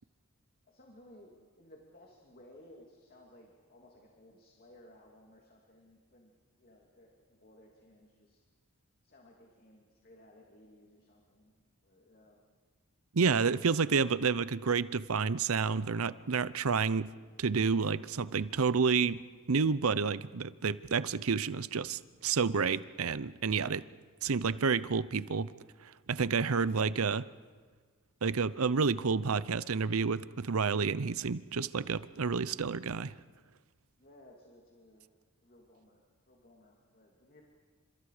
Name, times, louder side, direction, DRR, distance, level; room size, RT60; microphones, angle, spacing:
voice 1, 0.7-6.3 6.6-8.4 9.0-11.5 11.8-12.4 34.0-35.1 35.4-36.0 36.3-37.4, left 1 dB, 45° left, -1 dB, 3.0 m, -58 dB
voice 2, 13.1-17.1 17.4-19.2 19.5-23.8 24.2-25.5 25.8-27.3 28.2-33.2, right 5 dB, 75° right, 16 dB, 0.7 m, -30 dB
29.5 x 27.0 x 5.0 m, 1.5 s
head